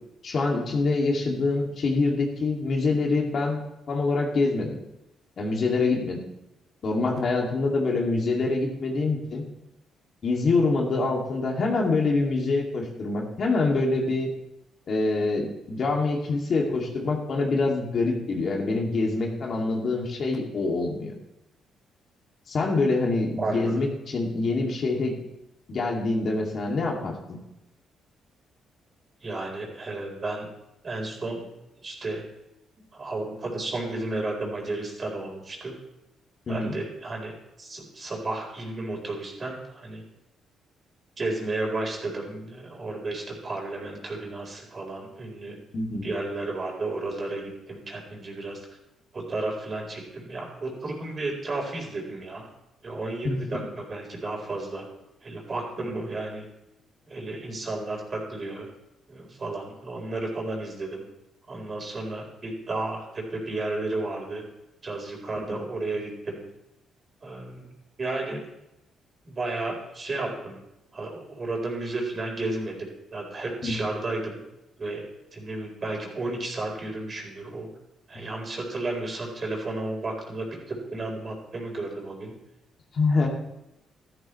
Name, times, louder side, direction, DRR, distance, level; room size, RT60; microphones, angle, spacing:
voice 1, 0.2-3.6 3.9-4.8 5.4-6.2 6.8-9.4 10.2-14.3 14.9-21.1 22.5-25.2 25.7-27.4 36.5-36.7 45.7-46.1 53.2-53.7 65.5-65.6 73.6-73.8 78.1-78.2 82.9-83.3, left 3 dB, 50° left, 0 dB, 2.6 m, -25 dB
voice 2, 23.4-23.8 29.2-30.5 30.8-31.5 31.8-32.2 32.9-35.7 36.5-37.3 37.6-40.0 41.2-45.6 46.0-48.7 49.1-52.5 52.8-54.8 55.2-56.4 57.1-58.7 59.1-61.0 61.5-64.4 64.8-66.4 67.2-67.7 68.0-68.4 69.3-70.6 70.9-74.4 74.8-75.0 75.3-77.7 78.1-82.3, right 2 dB, 40° right, 0 dB, 4.2 m, -33 dB
13.0 x 13.0 x 3.3 m, 0.88 s
cardioid pair, 90°, 0 cm